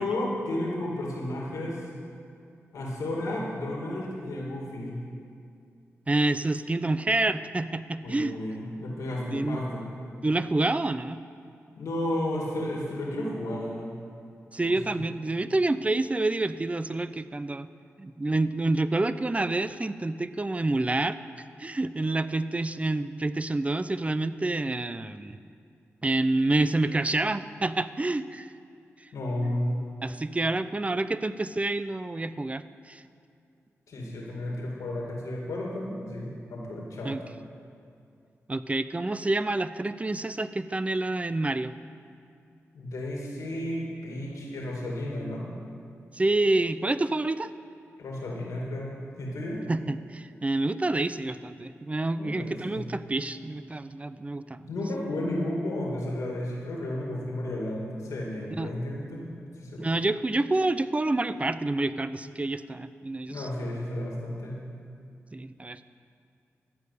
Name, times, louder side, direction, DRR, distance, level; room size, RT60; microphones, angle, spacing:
voice 1, 0.0-1.8 2.7-5.0 8.0-9.8 11.8-13.9 14.6-15.0 29.1-29.7 33.9-37.1 42.7-45.5 48.0-48.9 49.2-49.6 52.2-52.8 54.7-59.2 59.6-59.9 63.3-64.6, left 1 dB, 85° left, -3 dB, 2.3 m, -32 dB
voice 2, 6.1-8.3 9.3-9.6 10.2-11.2 14.5-17.7 18.0-21.2 21.6-25.4 26.0-28.5 30.0-33.0 37.0-37.2 38.5-41.7 46.1-47.5 49.7-54.7 58.6-58.7 59.8-63.5 65.3-65.9, right 2 dB, 25° right, 13 dB, 0.5 m, -28 dB
13.5 x 4.6 x 8.4 m, 2.4 s
cardioid pair, 50°, 5 cm